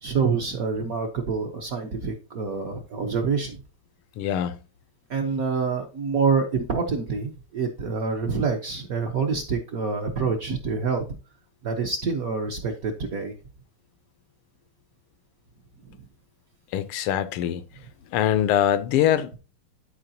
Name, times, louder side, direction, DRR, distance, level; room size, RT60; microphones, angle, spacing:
voice 1, 0.0-3.6 5.1-11.0 11.6-13.3, right 5 dB, 60° right, 1.0 m, -26 dB
voice 2, 4.2-4.6 16.7-17.6 18.1-19.3, left 11 dB, 80° left, 1.5 m, -23 dB
11.5 x 4.8 x 2.7 m
omnidirectional pair, 2.4 m